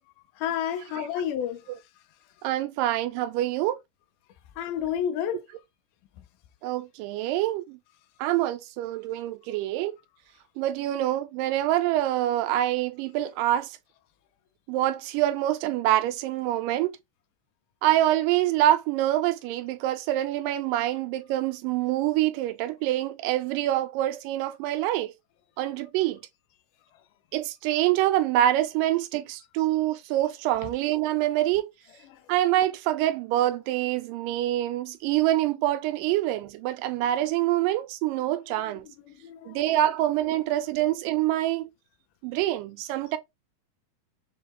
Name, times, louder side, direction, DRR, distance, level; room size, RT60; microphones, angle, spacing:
voice 1, 0.4-1.8 4.6-5.4 30.6-30.7 32.0-32.2 38.9-39.6, left 9 dB, 85° left, 2.2 m, -31 dB
voice 2, 2.4-3.8 6.6-7.8 8.2-10.0 10.6-13.7 14.7-17.0 17.8-25.1 25.6-26.2 27.3-31.7 32.3-38.8 39.5-41.7 42.2-43.2, right 13 dB, 90° right, 2.2 m, -25 dB
6.3 x 2.1 x 2.9 m
omnidirectional pair, 3.7 m